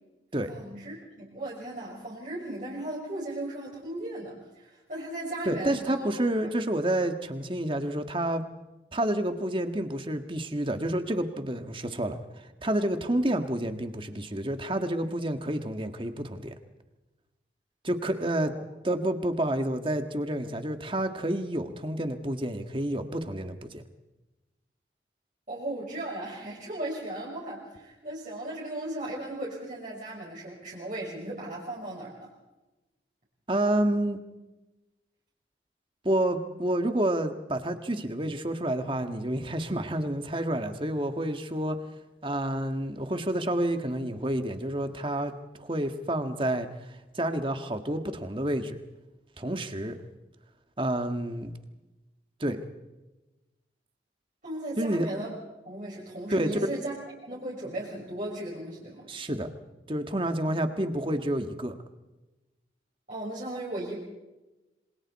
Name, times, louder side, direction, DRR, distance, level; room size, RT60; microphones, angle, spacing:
voice 1, 0.5-6.1 18.4-18.6 25.5-32.3 54.4-55.3 55.6-56.9 57.2-59.1 63.1-64.0, right 1 dB, 45° right, -5 dB, 6.1 m, -36 dB
voice 2, 5.5-8.4 8.9-16.6 17.8-18.5 18.8-23.8 33.5-34.2 36.0-41.8 42.2-45.3 45.6-46.7 47.2-48.8 49.4-50.0 50.8-51.5 52.4-52.6 54.8-55.1 56.3-56.6 59.1-59.5 59.9-61.7, right 1 dB, 30° right, 7 dB, 1.7 m, -29 dB
28.0 x 25.5 x 4.3 m, 1.1 s
head